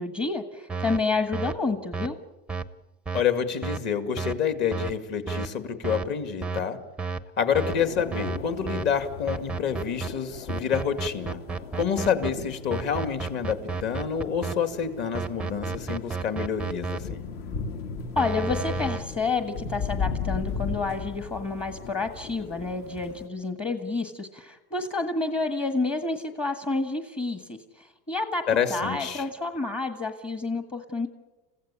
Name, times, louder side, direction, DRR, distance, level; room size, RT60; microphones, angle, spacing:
voice 1, 0.0-2.2 18.1-28.4 28.7-31.1, left 3 dB, 20° left, 6 dB, 1.5 m, -29 dB
sound 1, 0.7-1.0 1.3-1.5 1.9-2.1 2.5-2.6 3.1-3.2 3.6-3.8 4.2-4.3 4.7-4.9 5.3-5.5 5.8-6.0 6.4-6.6 7.0-7.2 7.5-7.8 8.1-8.4 8.7-8.8 9.3-10.1 10.5-12.3 12.7-14.5 15.1-17.0 18.2-19.0, right 4 dB, 5° right, 0.7 m, -31 dB
voice 2, 3.1-6.8 7.4-11.4 11.7-17.2 28.5-29.3, left 7 dB, 40° left, 8 dB, 2.3 m, -28 dB
sound 2, 7.6-23.3, left 5 dB, 55° left, 2.4 m, -37 dB
29.5 x 16.0 x 8.5 m, 1.1 s
supercardioid pair, 150°, 29 cm